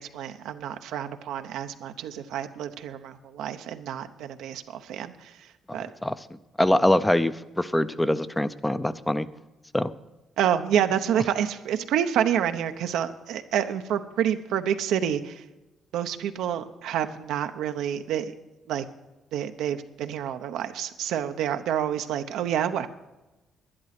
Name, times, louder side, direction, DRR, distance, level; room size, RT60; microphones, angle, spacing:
voice 1, 0.0-5.9 10.4-15.4 15.9-18.3 18.7-18.8 19.3-22.9, right 9 dB, 85° right, 8 dB, 0.8 m, -28 dB
voice 2, 5.7-6.2 6.6-9.3 9.7-9.9, left 1 dB, 10° left, 13 dB, 0.5 m, -24 dB
11.0 x 11.0 x 5.9 m, 1.1 s
cardioid pair, 90°, 0 cm